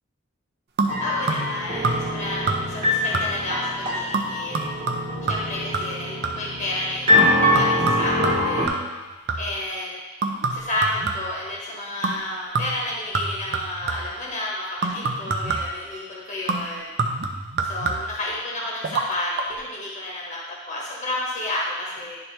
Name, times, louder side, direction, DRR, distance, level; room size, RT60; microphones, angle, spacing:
sound 1, 0.8-1.6 1.8-2.2 2.5-2.9 3.1-3.6 4.1-6.6 7.2-9.6 10.2-11.5 12.0-12.3 12.5-14.2 14.8-15.8 16.5-18.3 18.8-19.1 19.4-19.5, right 3 dB, 50° right, 0.7 m, -27 dB
sound 2, 0.9-8.7, left 1 dB, 35° right, 1.4 m, -24 dB
voice 1, 1.0-4.6 5.3-8.8 9.4-10.0 10.5-16.9 17.6-22.2, left 1 dB, 35° left, -5 dB, 1.4 m, -31 dB
11.0 x 4.4 x 3.3 m, 1.3 s
head